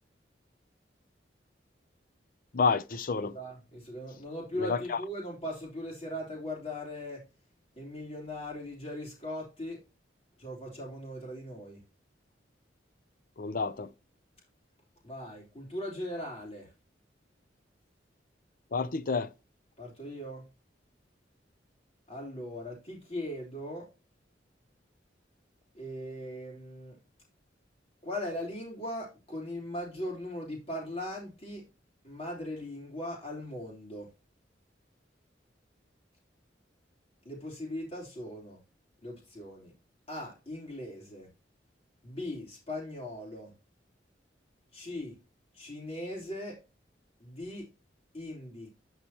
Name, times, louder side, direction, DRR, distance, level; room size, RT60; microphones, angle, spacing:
voice 1, 2.5-3.3 4.6-5.0 13.4-13.9 18.7-19.3, left 4 dB, 50° left, 0.6 m, -29 dB
voice 2, 3.3-7.2 7.7-9.8 10.4-11.8 15.0-16.7 19.8-20.4 22.1-23.9 25.7-27.0 28.0-31.7 32.0-34.1 37.2-38.6 39.0-39.7 40.1-41.3 42.0-43.5 44.7-45.2 45.5-46.6 47.2-47.7 48.1-48.7, left 1 dB, 35° left, 3.3 m, -39 dB
11.5 x 4.9 x 2.9 m
head